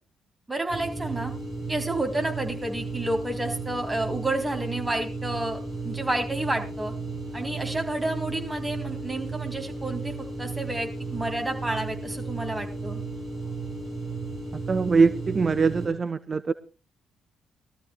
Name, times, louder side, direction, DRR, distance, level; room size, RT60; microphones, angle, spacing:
voice 1, 0.5-1.3 1.7-6.9 7.3-13.0, right 1 dB, 20° right, 3 dB, 3.8 m, -30 dB
sound 1, 0.7-15.9, right 3 dB, 50° right, 4.8 m, -34 dB
voice 2, 14.7-16.5, right 4 dB, 35° right, 12 dB, 0.6 m, -22 dB
22.5 x 13.5 x 2.4 m, 0.33 s
figure-of-eight pair, 40°, 0 cm